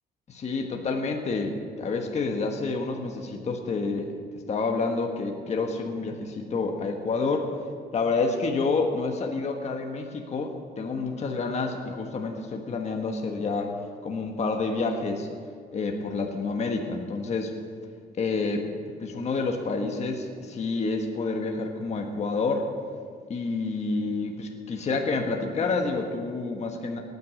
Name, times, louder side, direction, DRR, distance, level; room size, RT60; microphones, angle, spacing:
voice 1, 0.3-4.1 4.5-7.5 7.9-13.7 14.0-15.3 15.7-17.5 18.2-18.7 19.0-22.7 23.3-27.0, left 3 dB, 40° left, 2 dB, 1.4 m, -28 dB
18.0 x 9.6 x 7.1 m, 2.1 s
cardioid pair, 140°, 17 cm